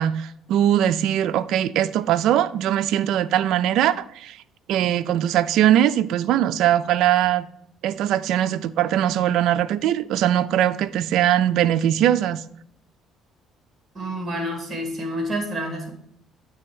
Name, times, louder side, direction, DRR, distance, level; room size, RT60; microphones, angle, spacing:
voice 1, 0.0-4.4 4.7-7.5 7.8-12.4, right 11 dB, 75° right, 0.3 m, -21 dB
voice 2, 13.9-15.9, equal, 25° right, 2.0 m, -28 dB
8.8 x 3.4 x 4.6 m
cardioid pair, 110°, 0 cm